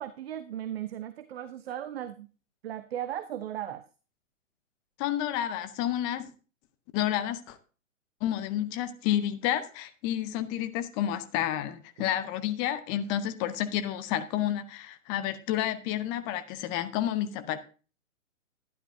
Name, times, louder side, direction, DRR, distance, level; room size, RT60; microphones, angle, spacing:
voice 1, 0.0-2.3 2.6-3.9 12.0-12.1, right 11 dB, 50° right, 0.9 m, -36 dB
voice 2, 5.0-6.3 6.9-7.6 8.2-17.6, left 11 dB, 10° left, 0.4 m, -30 dB
12.0 x 11.5 x 2.7 m
figure-of-eight pair, 120°, 40 cm